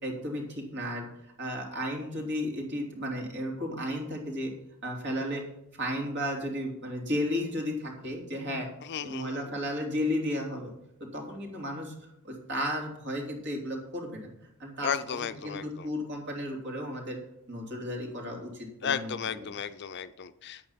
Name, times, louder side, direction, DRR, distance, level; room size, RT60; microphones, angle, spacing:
voice 1, 0.0-1.1 1.4-4.5 4.8-5.4 5.7-8.7 9.0-10.7 11.0-11.9 12.2-14.3 14.6-14.9 15.4-17.2 17.5-19.1, equal, 50° right, 0 dB, 3.1 m, -33 dB
voice 2, 8.8-9.5 14.8-15.9 18.8-20.6, left 7 dB, 50° left, 12 dB, 0.5 m, -34 dB
9.8 x 8.5 x 5.7 m, 0.77 s
head